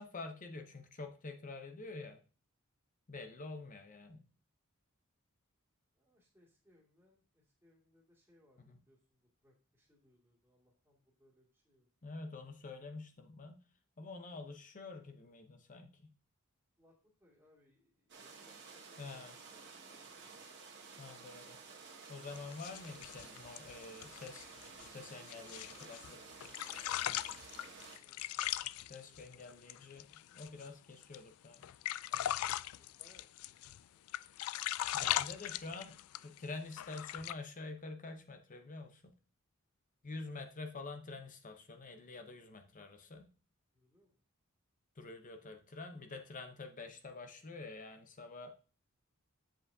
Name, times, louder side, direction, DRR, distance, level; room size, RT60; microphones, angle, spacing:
voice 1, 0.0-2.2 3.1-4.2 8.7-8.8 12.0-13.6 14.0-16.1 19.0-19.4 21.0-21.6 22.1-24.5 24.9-26.2 28.9-31.7 34.9-39.0 40.0-43.3 45.0-48.5, left 3 dB, 40° left, 5 dB, 0.7 m, -47 dB
voice 2, 5.9-11.9 16.8-16.9 17.2-20.5 25.1-27.0 27.6-29.2 32.8-34.0 43.7-44.2, left 1 dB, 10° right, -7 dB, 2.2 m, -70 dB
sound 1, 18.1-28.0, right 5 dB, 55° right, 1.7 m, -53 dB
sound 2, 22.4-26.1 26.4-30.7 31.0-31.2 31.5-33.8 34.1-36.4 36.7-37.3, left 13 dB, 75° left, 0.3 m, -39 dB
7.6 x 7.6 x 2.7 m, 0.37 s
head